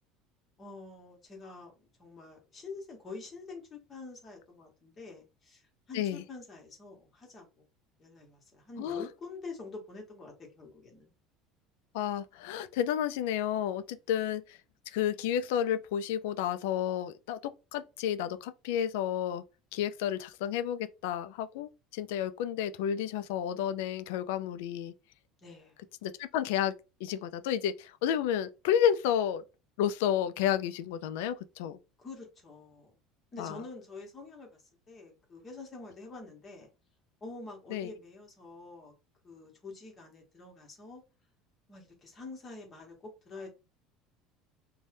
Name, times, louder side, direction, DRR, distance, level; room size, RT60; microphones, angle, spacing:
voice 1, 0.6-5.6 5.9-7.7 8.0-11.1 25.4-25.8 32.0-33.0 33.3-34.6 34.9-36.7 37.2-38.9 39.2-41.0 41.7-42.9 43.2-43.5, left 3 dB, 25° left, 1.2 m, -46 dB
voice 2, 11.9-14.6 14.9-19.4 19.7-24.9 26.0-26.8 27.0-29.4 29.8-31.8 33.4-33.6 37.7-37.9, left 9 dB, 85° left, 0.3 m, -31 dB
2.6 x 2.2 x 3.3 m
cardioid pair, 145°, 0 cm